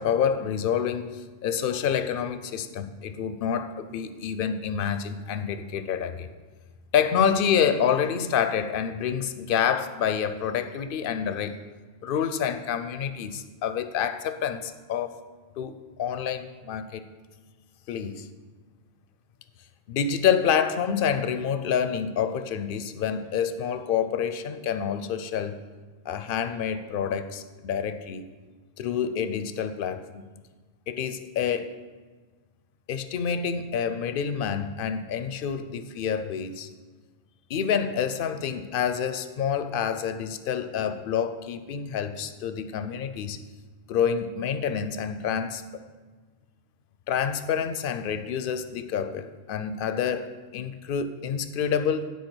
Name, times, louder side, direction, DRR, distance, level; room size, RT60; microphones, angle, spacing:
voice 1, 0.0-6.3 6.9-11.5 12.0-15.2 15.6-17.0 17.9-18.3 19.9-25.6 26.1-28.3 28.8-30.3 30.9-31.8 32.9-36.7 37.5-43.4 43.9-45.6 47.1-52.1, left 7 dB, 60° left, 10 dB, 0.7 m, -27 dB
9.4 x 4.6 x 6.1 m, 1.4 s
omnidirectional pair, 1.1 m